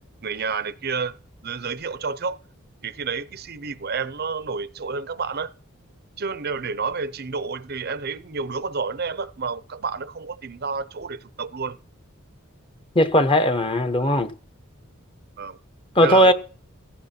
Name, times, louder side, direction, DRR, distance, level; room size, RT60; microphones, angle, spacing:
voice 1, 0.2-1.2 1.4-2.4 2.8-5.5 6.2-11.8 15.4-15.6 16.0-16.3, right 5 dB, 50° right, 0.7 m, -30 dB
voice 2, 12.9-14.3 15.9-16.3, equal, 25° left, 1.1 m, -18 dB
17.5 x 15.5 x 4.4 m
head